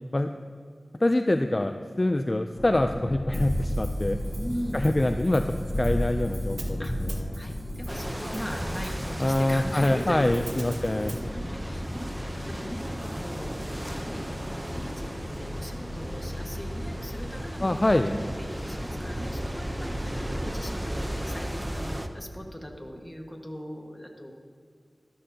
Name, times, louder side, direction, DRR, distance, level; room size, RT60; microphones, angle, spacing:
voice 1, 1.0-4.2 4.7-7.4 9.2-11.2 17.6-18.1, left 1 dB, 35° left, 7 dB, 0.4 m, -25 dB
sound 1, 2.5-20.5, equal, 55° left, 1.7 m, -35 dB
Hi-hat, 3.3-11.2, right 2 dB, 80° right, 1.2 m, -48 dB
voice 2, 4.3-4.8 6.8-6.9 7.3-10.6 10.9-15.1 15.4-24.3, equal, 10° left, 1 dB, 1.6 m, -39 dB
sound 2, 7.9-22.1, equal, 15° right, 0.7 m, -36 dB
13.0 x 13.0 x 2.8 m, 2.1 s
wide cardioid pair, 50°, 0 cm